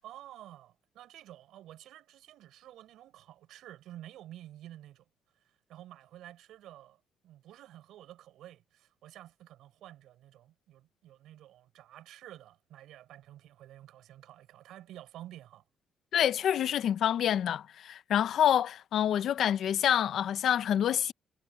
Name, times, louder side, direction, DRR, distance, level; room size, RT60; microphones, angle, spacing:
voice 1, 0.0-5.0 5.4-15.6, right 13 dB, 85° right, 7.0 m, -51 dB
voice 2, 16.1-21.1, left 10 dB, 70° left, 1.1 m, -27 dB
cardioid pair, 90°, 0 cm